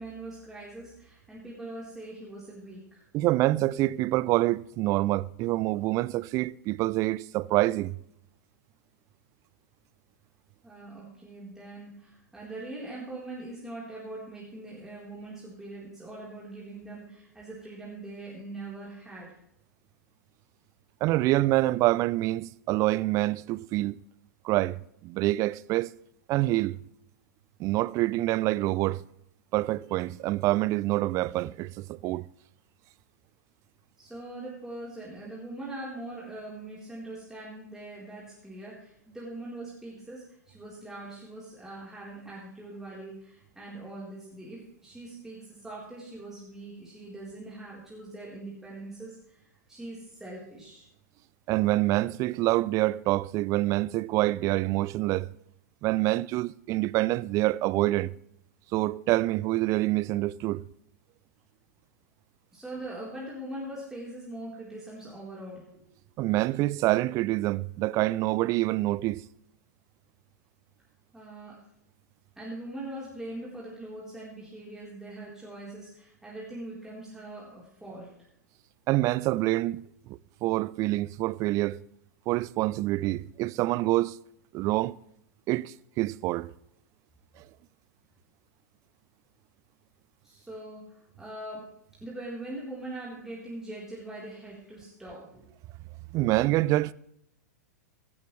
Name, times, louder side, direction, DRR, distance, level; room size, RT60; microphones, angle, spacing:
voice 1, 0.0-3.0 10.6-19.4 34.0-50.9 62.5-65.9 71.1-71.6 72.4-78.1 90.2-95.5, right 2 dB, 5° right, 4.0 m, -42 dB
voice 2, 3.1-8.0 21.0-24.0 24.4-25.9 26.3-26.8 27.6-29.0 29.5-32.3 51.5-55.3 55.8-58.1 58.7-60.6 66.2-69.2 78.9-81.8 82.3-84.2 84.5-85.0 85.5-86.5 96.1-96.9, right 18 dB, 35° right, 0.4 m, -26 dB
16.0 x 13.0 x 3.3 m
hypercardioid pair, 105°, 9 cm